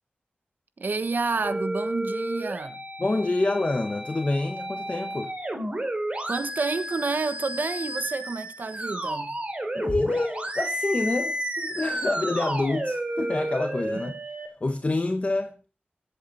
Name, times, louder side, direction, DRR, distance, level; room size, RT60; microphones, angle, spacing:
voice 1, 0.8-2.8 6.3-9.4, right 4 dB, 65° right, 1.0 m, -29 dB
sound 1, 1.4-14.5, right 1 dB, 35° right, 3.1 m, -32 dB
voice 2, 3.0-5.3 9.7-14.1 14.6-15.5, left 2 dB, 40° left, 1.3 m, -27 dB
22.0 x 8.0 x 4.2 m
wide cardioid pair, 90°, 3 cm